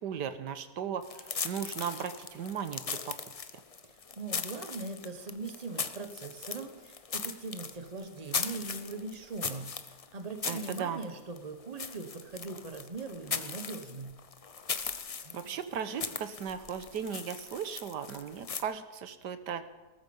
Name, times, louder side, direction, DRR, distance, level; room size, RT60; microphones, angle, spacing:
voice 1, 0.0-3.1 10.4-11.0 15.3-19.6, right 8 dB, 90° right, 11 dB, 1.6 m, -37 dB
sound 1, 1.0-18.6, left 5 dB, 55° left, 0.4 m, -39 dB
voice 2, 3.8-9.7 10.1-14.2 15.2-15.5 16.0-16.1, right 3 dB, 25° right, 7 dB, 1.2 m, -41 dB
19.0 x 13.5 x 5.4 m, 1.2 s
omnidirectional pair, 1.8 m